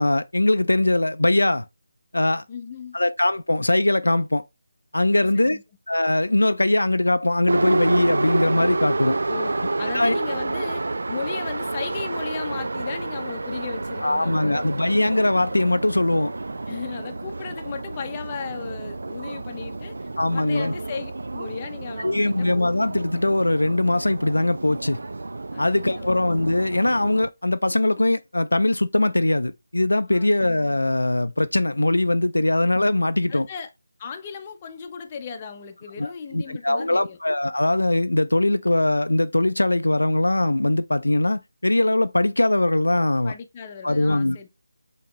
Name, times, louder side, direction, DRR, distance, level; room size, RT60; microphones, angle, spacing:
voice 1, 0.0-1.7 2.1-2.4 2.9-4.4 4.9-5.6 5.9-9.2 9.9-10.2 14.0-16.3 20.2-20.7 22.0-25.0 25.6-33.5 36.0-43.3 43.8-44.4, left 1 dB, 90° left, 0.4 m, -21 dB
voice 2, 2.5-3.0 5.1-5.6 9.3-14.8 16.7-22.5 25.5-25.6 25.9-26.2 30.1-30.4 33.3-33.7 34.0-37.2 43.2-44.5, left 6 dB, 25° left, 0.6 m, -36 dB
Subway metro underground, 7.5-27.3, right 2 dB, 70° right, 0.3 m, -29 dB
5.8 x 2.9 x 3.0 m
figure-of-eight pair, 160°, 0 cm